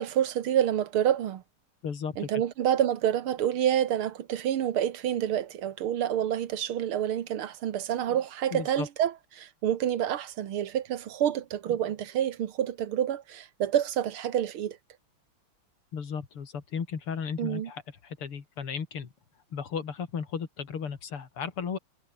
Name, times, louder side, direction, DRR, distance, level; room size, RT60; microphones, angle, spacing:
voice 1, 0.0-1.4 2.2-14.8 17.4-17.7, right 10 dB, 80° right, 2.1 m, -28 dB
voice 2, 1.8-2.4 8.5-8.9 15.9-19.1 19.5-21.8, left 6 dB, 85° left, 3.4 m, -35 dB
omnidirectional pair, 2.4 m